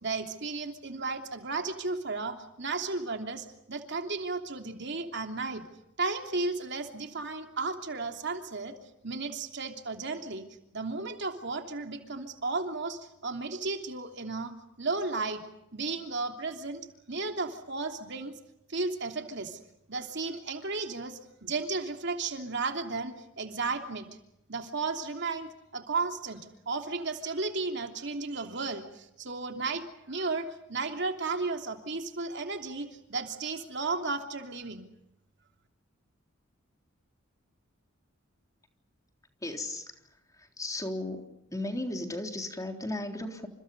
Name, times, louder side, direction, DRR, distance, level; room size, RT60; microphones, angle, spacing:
voice 1, 0.0-5.6 6.0-8.8 9.0-10.5 10.7-14.5 14.8-15.4 15.7-18.4 18.7-19.6 19.9-24.1 24.5-34.9, right 3 dB, 60° right, 4 dB, 3.0 m, -34 dB
voice 2, 39.4-41.2 41.5-43.5, left 1 dB, 15° left, 4 dB, 3.6 m, -36 dB
29.5 x 28.0 x 5.4 m, 0.85 s
head